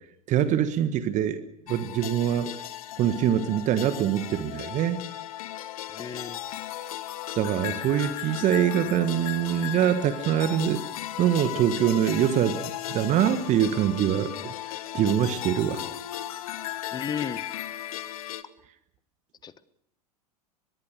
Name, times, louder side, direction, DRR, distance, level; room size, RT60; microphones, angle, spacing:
voice 1, 0.3-1.4 1.7-2.5 3.0-5.0 7.4-10.8 11.2-12.6 12.9-14.5 14.9-15.8, right 10 dB, 35° right, 11 dB, 1.5 m, -24 dB
sound 1, 1.7-18.4, left 13 dB, 65° left, 1.3 m, -36 dB
voice 2, 5.9-6.4 16.9-17.4 19.4-19.5, left 7 dB, 20° left, 17 dB, 1.1 m, -33 dB
23.0 x 22.0 x 6.5 m, 0.73 s
figure-of-eight pair, 85°, 20 cm